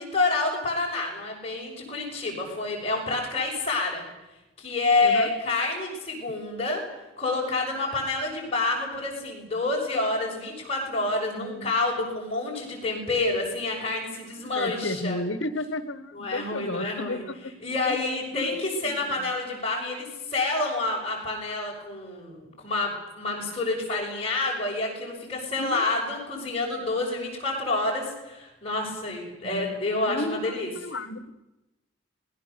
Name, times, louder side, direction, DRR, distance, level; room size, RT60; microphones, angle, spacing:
voice 1, 0.0-4.0 4.6-6.8 7.2-15.2 16.1-17.2 17.6-30.7, left 2 dB, 30° left, -2 dB, 6.2 m, -28 dB
voice 2, 11.4-11.7 14.5-17.5 17.9-18.0 18.3-18.5 18.8-18.9 25.6-25.9 29.5-31.3, left 2 dB, 75° left, 13 dB, 1.2 m, -33 dB
26.0 x 20.0 x 6.8 m, 1.0 s
head